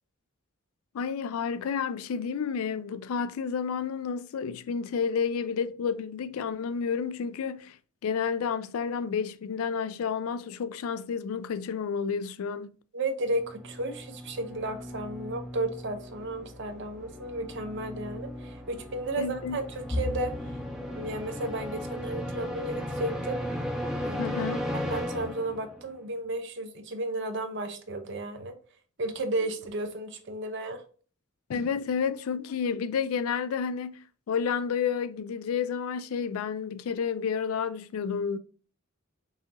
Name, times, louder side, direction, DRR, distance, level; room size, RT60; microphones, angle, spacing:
voice 1, 0.9-7.8 8.0-12.7 19.2-19.6 24.2-24.6 31.5-34.0 34.3-38.4, left 6 dB, 80° left, 0.4 m, -30 dB
voice 2, 12.9-20.6 20.9-23.4 24.0-24.4 24.7-28.6 29.0-30.8, right 2 dB, 55° right, 0.7 m, -33 dB
sound 1, 13.3-25.9, equal, 5° right, 0.5 m, -36 dB
Bowed string instrument, 19.9-23.4, left 1 dB, 15° left, 0.8 m, -38 dB
5.5 x 2.9 x 2.6 m
head